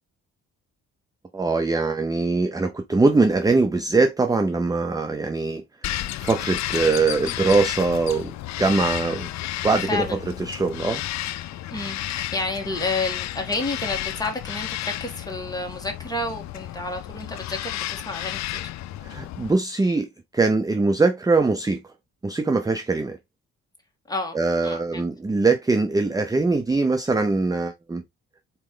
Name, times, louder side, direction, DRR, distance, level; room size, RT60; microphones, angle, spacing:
voice 1, 1.3-9.3 9.6-10.0 10.4-11.1 19.0-20.1 20.3-21.8 22.2-23.2 24.3-28.0, right 3 dB, 10° right, 0.6 m, -22 dB
Bird vocalization bird call bird song, 5.8-19.5, left 14 dB, 65° left, 0.5 m, -32 dB
voice 2, 9.8-10.2 11.7-18.7 24.1-25.1, left 2 dB, 15° left, 1.7 m, -30 dB
4.4 x 3.1 x 3.7 m
cardioid pair, 90°, 30 cm